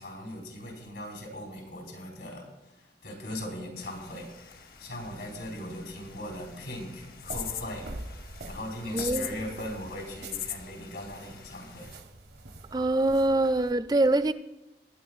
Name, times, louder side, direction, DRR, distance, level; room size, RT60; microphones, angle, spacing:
voice 1, 0.0-11.9, left 1 dB, 85° left, 3.5 m, -40 dB
sound 1, 3.8-12.0, left 9 dB, 55° left, 0.8 m, -43 dB
sound 2, 7.2-13.7, right 2 dB, 65° right, 0.8 m, -44 dB
voice 2, 8.9-9.4 12.7-14.3, right 2 dB, 20° right, 0.4 m, -24 dB
19.5 x 10.0 x 2.4 m
head